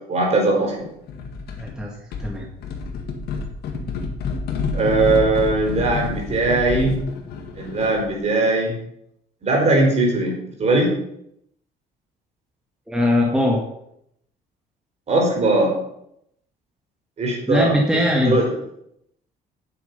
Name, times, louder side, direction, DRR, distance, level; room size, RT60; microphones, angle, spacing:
voice 1, 0.1-0.9 4.7-6.9 7.6-8.7 9.4-10.9 15.1-15.7 17.2-17.7 18.2-18.5, right 2 dB, 40° right, 0 dB, 4.6 m, -19 dB
sound 1, 1.1-1.8 2.1-8.1, left 4 dB, 70° left, 1.8 m, -29 dB
voice 2, 1.6-1.9 2.2-2.5 12.9-13.6 17.5-18.3, left 1 dB, 5° right, -1 dB, 1.8 m, -20 dB
9.3 x 7.7 x 5.6 m, 0.75 s
cardioid pair, 110°, 17 cm